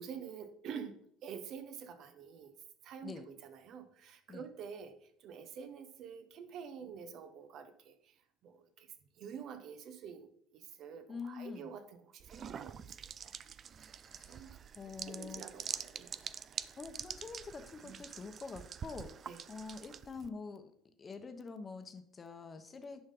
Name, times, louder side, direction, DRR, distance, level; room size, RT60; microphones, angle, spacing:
voice 1, 0.0-2.5 2.8-8.2 8.4-8.9 9.2-13.4 13.8-13.9 14.3-14.6 15.1-16.2 17.8-18.0 19.3-19.4, right 7 dB, 55° right, 10 dB, 1.1 m, -48 dB
voice 2, 11.1-11.8 14.1-15.4 16.8-20.7 21.0-23.0, left 4 dB, 25° left, 8 dB, 1.0 m, -46 dB
sound 1, 12.2-20.3, right 7 dB, 40° right, 0.4 m, -46 dB
10.0 x 5.5 x 3.8 m, 0.67 s
cardioid pair, 120°, 0 cm